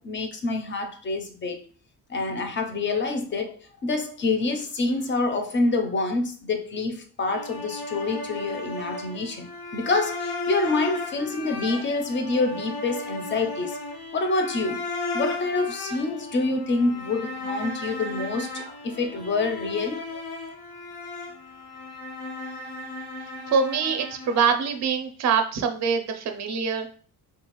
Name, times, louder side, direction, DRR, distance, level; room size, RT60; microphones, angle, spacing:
voice 1, 0.0-1.6 2.1-13.8 14.1-14.8 15.1-20.0, left 3 dB, 30° left, 0.4 m, -27 dB
sound 1, 7.3-24.4, left 2 dB, 85° left, 0.9 m, -35 dB
voice 2, 23.5-26.9, right 6 dB, 45° right, 0.5 m, -24 dB
3.8 x 2.3 x 2.9 m
wide cardioid pair, 180°, 39 cm